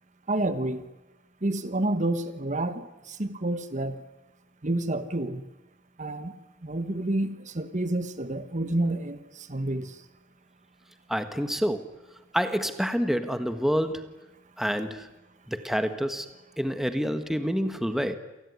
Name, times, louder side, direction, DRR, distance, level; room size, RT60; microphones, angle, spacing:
voice 1, 0.3-0.9 1.4-4.0 4.6-5.4 6.0-6.3 6.6-10.0, right 1 dB, 40° right, 11 dB, 1.3 m, -29 dB
voice 2, 11.1-11.9 12.3-14.1 14.6-15.1 15.5-16.3 16.6-18.1, equal, ahead, 9 dB, 1.4 m, -27 dB
28.0 x 19.5 x 9.7 m, 1.0 s
head